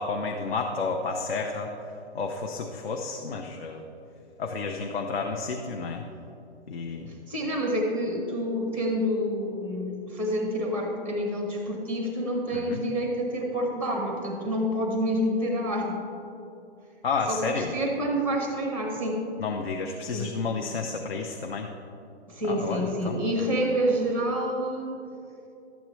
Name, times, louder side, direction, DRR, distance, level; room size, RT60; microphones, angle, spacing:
voice 1, 0.0-1.7 2.1-3.8 4.4-6.0 6.7-7.1 12.5-12.8 17.0-17.7 19.4-21.7 22.5-23.2, left 4 dB, 60° left, 3 dB, 0.8 m, -31 dB
voice 2, 7.1-16.0 17.3-19.2 20.1-20.3 22.3-24.9, equal, 5° left, 1 dB, 0.7 m, -28 dB
12.0 x 8.4 x 3.1 m, 2.7 s
hypercardioid pair, 150°, 34 cm